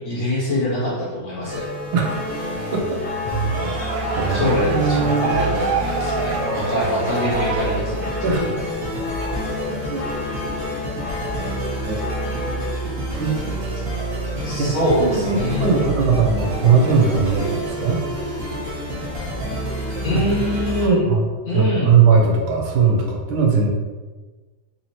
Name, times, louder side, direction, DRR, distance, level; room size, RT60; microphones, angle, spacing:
voice 1, 0.0-1.6 3.2-3.7 4.3-8.4 13.9-14.0 14.4-15.9 20.0-21.1 21.4-22.0, left 1 dB, 50° left, -7 dB, 1.6 m, -24 dB
sound 1, 1.4-20.9, right 1 dB, 50° right, 1.4 m, -29 dB
sound 2, 1.5-12.7, left 2 dB, 90° left, 1.5 m, -32 dB
sound 3, 3.3-8.3, right 4 dB, 75° right, 1.2 m, -27 dB
voice 2, 4.2-5.3 8.2-8.5 9.9-10.0 11.8-12.0 13.2-13.4 14.6-18.0 20.1-20.2 20.8-21.3 21.5-23.7, right 5 dB, 90° right, 0 dB, 1.5 m, -19 dB
4.1 x 2.9 x 2.7 m, 1.3 s
omnidirectional pair, 2.2 m